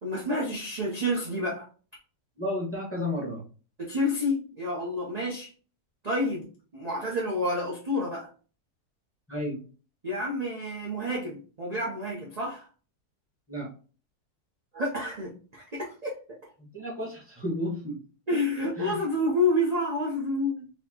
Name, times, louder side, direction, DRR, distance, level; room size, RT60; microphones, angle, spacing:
voice 1, 0.0-1.7 3.8-5.5 6.0-6.4 6.7-8.3 10.0-12.7 14.7-16.1 18.3-20.7, left 1 dB, 45° right, -3 dB, 0.5 m, -29 dB
voice 2, 2.4-3.4 9.3-9.6 13.5-13.7 16.7-18.0 18.8-19.0, left 1 dB, 10° left, -4 dB, 0.8 m, -32 dB
4.2 x 2.9 x 2.8 m, 0.38 s
omnidirectional pair, 1.7 m